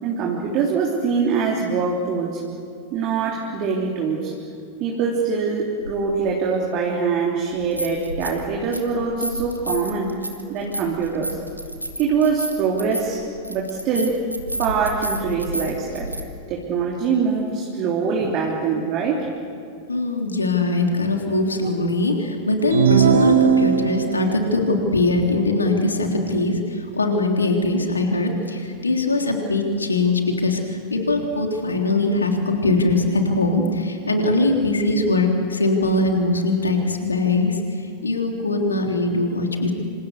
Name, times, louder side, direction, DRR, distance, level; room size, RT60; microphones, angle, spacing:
voice 1, 0.0-2.4 2.9-4.3 4.8-10.1 10.5-11.4 12.0-14.2 14.6-16.1 16.5-19.3, right 5 dB, 40° right, -1 dB, 3.4 m, -23 dB
sound 1, 5.8-5.9 7.5-8.4 8.7-16.2, right 1 dB, 90° right, 1.9 m, -31 dB
voice 2, 19.9-37.6 38.0-39.7, left 2 dB, 75° left, 2 dB, 3.5 m, -21 dB
sound 2, 22.7-24.3, right 7 dB, 65° right, 1.4 m, -17 dB
28.0 x 27.0 x 7.0 m, 2.5 s
figure-of-eight pair, 90°, 0 cm